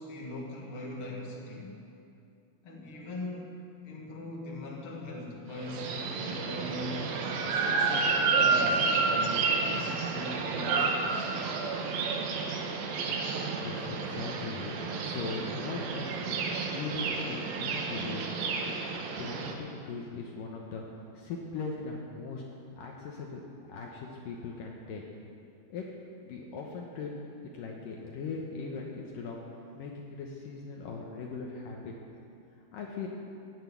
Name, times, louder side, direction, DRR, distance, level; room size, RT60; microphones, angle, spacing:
voice 1, 0.0-1.7 2.6-3.5 3.8-7.1 7.4-11.3, left 1 dB, 40° left, -2 dB, 2.6 m, -41 dB
sound 1, 5.6-19.5, right 4 dB, 75° right, 2.9 m, -30 dB
voice 2, 13.6-16.4 16.7-18.7 19.2-20.8 21.1-22.4 22.8-23.4 23.7-25.0 25.7-25.8 26.2-27.1 27.4-29.4 29.8-31.9 32.7-33.1, left 4 dB, 70° left, -1 dB, 2.6 m, -39 dB
15.0 x 8.2 x 9.4 m, 2.6 s
omnidirectional pair, 4.3 m